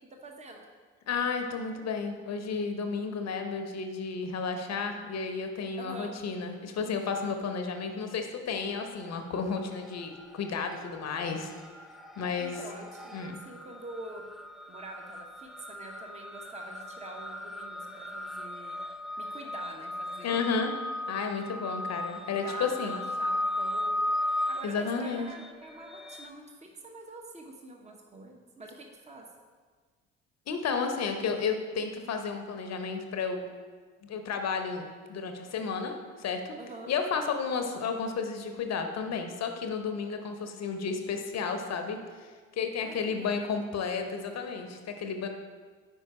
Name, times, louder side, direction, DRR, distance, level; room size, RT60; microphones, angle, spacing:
voice 1, 0.2-0.6 5.8-6.1 12.4-14.2 14.7-18.8 19.2-20.4 21.4-21.9 22.3-24.0 24.5-29.3 36.6-36.9 42.8-43.4, right 2 dB, 20° right, 2 dB, 0.9 m, -46 dB
voice 2, 1.1-11.5 12.2-12.6 13.1-13.4 20.2-20.7 21.1-22.9 24.6-25.3 30.5-33.5 34.0-36.5 36.9-45.3, left 5 dB, 50° left, 5 dB, 0.8 m, -32 dB
sound 1, 8.7-9.4 9.7-26.3, left 1 dB, ahead, 0.4 m, -37 dB
5.4 x 4.7 x 4.7 m, 1.5 s
hypercardioid pair, 60°, 34 cm